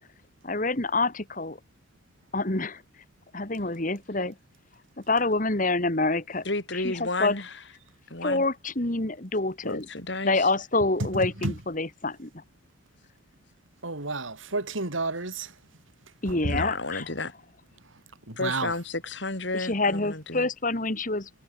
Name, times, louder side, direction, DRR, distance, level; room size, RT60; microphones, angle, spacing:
voice 1, 0.4-1.6 2.3-2.8 3.3-4.3 5.1-6.4 6.7-7.4 8.2-9.9 10.2-12.3 16.2-17.1 19.5-21.3, left 2 dB, 40° left, 2.2 m, -27 dB
voice 2, 6.4-7.5 8.1-8.4 9.6-10.5 16.5-17.3 18.4-20.5, left 2 dB, 65° left, 4.0 m, -32 dB
voice 3, 13.8-15.5 16.4-16.5 18.3-18.7, right 3 dB, 85° right, 3.4 m, -30 dB
head